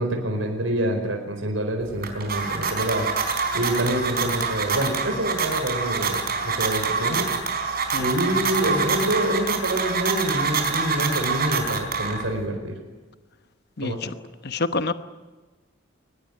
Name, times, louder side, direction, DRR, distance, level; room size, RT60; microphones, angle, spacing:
voice 1, 0.0-7.3 8.0-12.7 13.8-14.1, right 1 dB, 75° right, 3 dB, 4.8 m, -26 dB
sound 1, 1.8-12.4, right 5 dB, 50° right, 4.3 m, -26 dB
voice 2, 13.8-14.1 14.4-14.9, left 3 dB, 55° left, 11 dB, 1.0 m, -27 dB
22.5 x 20.0 x 9.7 m, 1.3 s
head